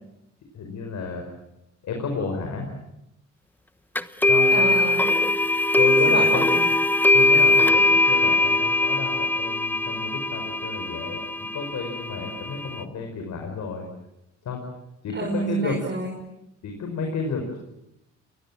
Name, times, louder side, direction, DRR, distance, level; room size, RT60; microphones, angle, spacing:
voice 1, 0.5-1.2 1.8-2.7 4.3-4.7 5.8-6.4 7.1-13.9 14.4-14.7 15.0-15.8 16.6-17.6, left 4 dB, 70° left, 3 dB, 5.5 m, -31 dB
sound 1, 4.0-12.8, left 2 dB, 5° left, 1.2 m, -21 dB
voice 2, 4.5-5.1 6.0-6.6 15.1-16.2, right 4 dB, 40° right, -1 dB, 6.3 m, -28 dB
29.0 x 22.0 x 7.5 m, 0.87 s
cardioid pair, 90°, 30 cm